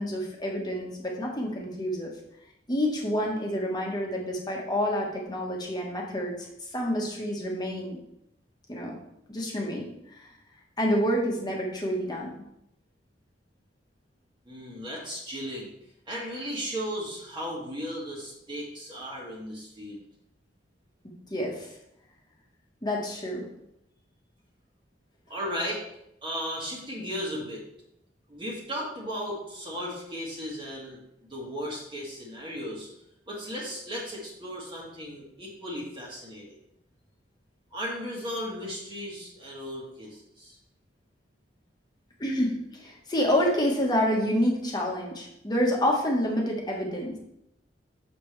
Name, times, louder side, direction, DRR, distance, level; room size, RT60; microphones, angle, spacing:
voice 1, 0.0-2.1 2.7-6.5 6.7-8.0 8.7-9.0 9.3-10.3 10.8-12.4 21.3-21.7 22.8-23.5 42.2-47.2, equal, 25° left, -1 dB, 1.4 m, -28 dB
voice 2, 14.5-15.7 16.1-20.0 25.3-25.8 26.2-27.6 28.3-32.9 33.3-36.6 37.7-40.6, equal, 30° right, -5 dB, 1.8 m, -36 dB
6.9 x 6.7 x 3.3 m, 0.79 s
head